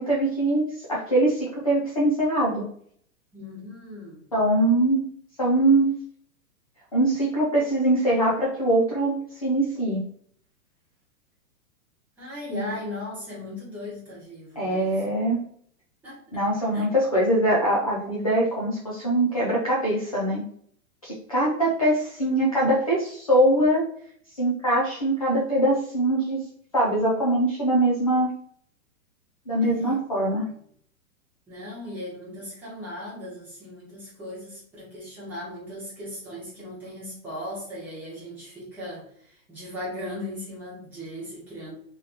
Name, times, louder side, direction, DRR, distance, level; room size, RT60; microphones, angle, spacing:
voice 1, 0.0-2.6 4.3-5.0 5.4-5.9 6.9-9.1 9.4-10.0 12.5-12.8 14.6-15.4 16.3-20.4 21.0-23.8 24.4-26.4 26.7-28.3 29.5-30.5, right 1 dB, 30° left, -5 dB, 0.4 m, -22 dB
voice 2, 3.3-4.3 12.2-15.0 16.0-16.4 16.7-16.8 29.6-30.6 31.5-41.7, left 1 dB, 5° right, -9 dB, 1.0 m, -38 dB
3.3 x 3.0 x 3.3 m, 0.62 s
hypercardioid pair, 175°, 42 cm